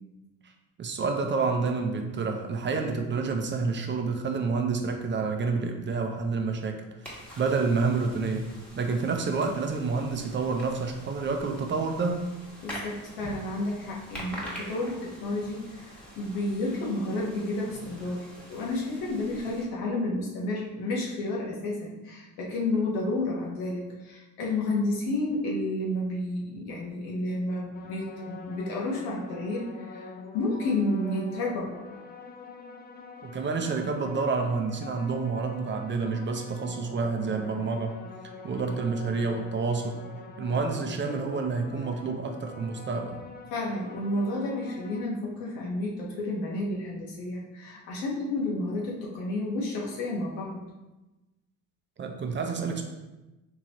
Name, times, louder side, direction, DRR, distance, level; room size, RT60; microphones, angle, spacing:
voice 1, 0.8-6.8 7.0-8.5 8.8-12.2 33.2-38.0 38.4-40.0 40.4-43.2 52.0-52.8, right 4 dB, 35° right, 4 dB, 0.5 m, -28 dB
sound 1, 7.0-19.6, equal, 5° left, 1.2 m, -45 dB
voice 2, 12.6-31.7 43.5-50.6, left 2 dB, 90° left, -3 dB, 1.1 m, -31 dB
sound 2, 27.7-45.0, left 4 dB, 25° left, 0.4 m, -45 dB
3.7 x 2.9 x 2.9 m, 1.1 s
supercardioid pair, 85°, 35 cm